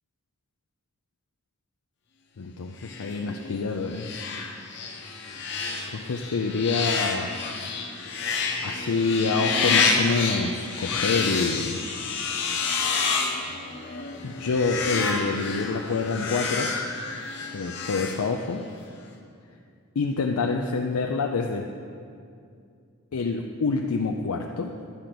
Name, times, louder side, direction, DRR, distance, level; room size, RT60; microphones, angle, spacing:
voice 1, 2.4-4.1 5.0-5.3 5.9-7.3 8.6-11.8 12.2-12.4 14.2-16.7 17.5-18.6 20.0-21.7 23.1-24.7, left 4 dB, 85° left, 3 dB, 0.5 m, -27 dB
sound 1, 2.8-18.7, left 4 dB, 55° left, 0.9 m, -29 dB
11.0 x 5.1 x 5.9 m, 2.4 s
head